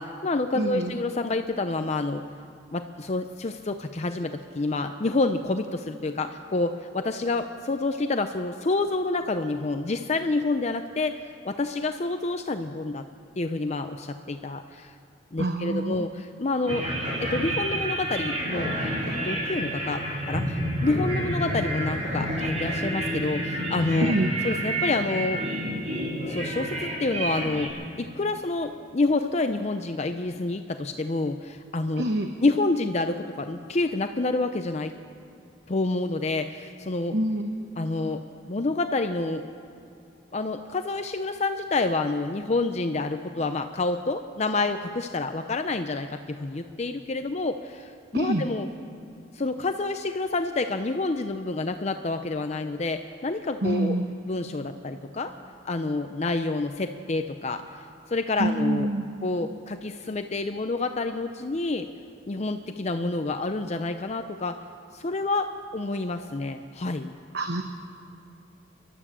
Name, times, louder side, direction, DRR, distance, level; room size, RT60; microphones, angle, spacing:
voice 1, 0.0-2.3 2.7-13.1 13.4-14.9 15.3-16.9 17.2-18.7 19.2-24.2 24.4-25.4 26.3-32.1 32.4-34.9 35.7-37.2 37.8-39.5 40.3-48.7 49.3-54.0 54.3-55.3 55.7-58.9 59.2-61.9 62.3-64.6 64.9-67.1, left 2 dB, 35° left, 7 dB, 0.6 m, -28 dB
voice 2, 0.6-0.9 15.4-16.0 24.0-24.3 32.0-32.3 37.1-37.5 48.1-48.4 53.6-54.0 58.4-59.1 67.3-67.6, right 1 dB, 60° right, 5 dB, 1.0 m, -26 dB
sound 1, 16.7-27.7, right 1 dB, 35° right, 4.8 m, -29 dB
28.5 x 12.0 x 7.5 m, 2.5 s
head